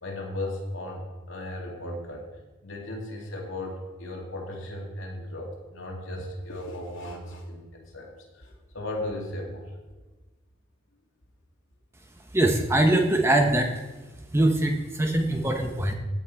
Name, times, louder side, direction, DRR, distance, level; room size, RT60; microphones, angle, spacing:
voice 1, 0.0-2.3 2.6-9.7, left 1 dB, 80° left, -1 dB, 2.6 m, -36 dB
voice 2, 12.3-13.7 14.3-15.9, right 1 dB, 15° right, 3 dB, 0.9 m, -22 dB
16.0 x 6.0 x 4.5 m, 1.2 s
head